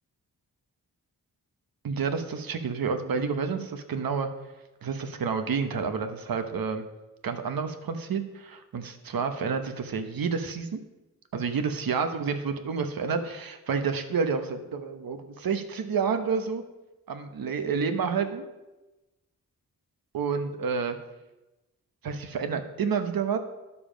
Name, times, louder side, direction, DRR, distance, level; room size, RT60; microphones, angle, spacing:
voice 1, 1.8-4.3 4.8-6.9 7.2-10.8 11.3-16.6 17.1-18.4 20.1-21.0 22.0-23.4, right 5 dB, 75° right, 8 dB, 1.0 m, -29 dB
11.0 x 7.0 x 5.1 m, 1.1 s
wide cardioid pair, 160°, 36 cm